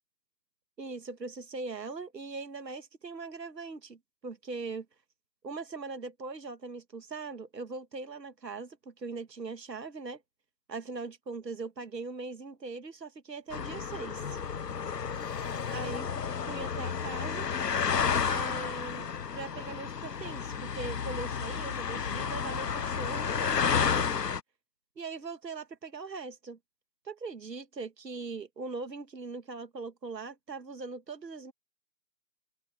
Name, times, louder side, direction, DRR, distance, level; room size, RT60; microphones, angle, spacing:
voice 1, 0.8-4.9 5.4-10.2 10.7-14.4 15.7-16.1 16.5-17.5 18.3-24.2 25.0-26.6 27.0-31.5, right 4 dB, 85° right, 2.1 m, -40 dB
sound 1, 13.5-24.4, left 6 dB, 75° left, 1.2 m, -31 dB
sound 2, 15.1-17.6 17.9-18.5, left 6 dB, 30° left, 4.0 m, -51 dB
hypercardioid pair, 175°, 49 cm